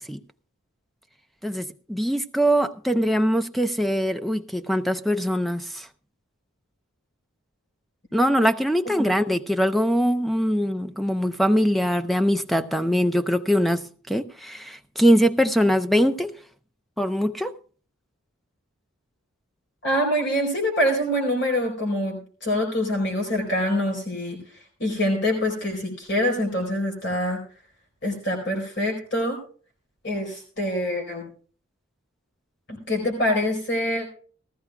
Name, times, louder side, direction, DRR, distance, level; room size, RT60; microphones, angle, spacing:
voice 1, 1.4-5.9 8.1-16.3 17.0-17.5, equal, ahead, 0.5 m, -22 dB
voice 2, 19.8-24.4 24.8-27.4 28.0-29.4 30.0-31.3 32.7-34.1, left 1 dB, 50° left, 4.3 m, -25 dB
19.0 x 15.0 x 2.3 m
head